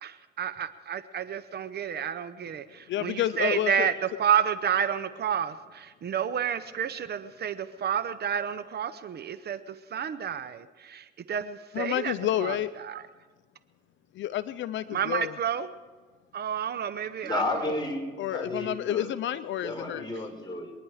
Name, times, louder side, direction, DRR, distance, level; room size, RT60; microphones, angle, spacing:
voice 1, 0.0-12.1 12.4-13.0 14.9-15.7 16.3-17.4, right 8 dB, 55° right, 12 dB, 0.8 m, -30 dB
voice 2, 2.9-3.9 11.7-12.7 14.1-15.3 18.2-20.1, left 12 dB, 70° left, 14 dB, 0.5 m, -29 dB
voice 3, 17.2-18.0 18.3-19.1 19.6-20.7, left 2 dB, 20° left, 1 dB, 4.4 m, -32 dB
24.0 x 10.5 x 4.9 m, 1.4 s
cardioid pair, 90°, 20 cm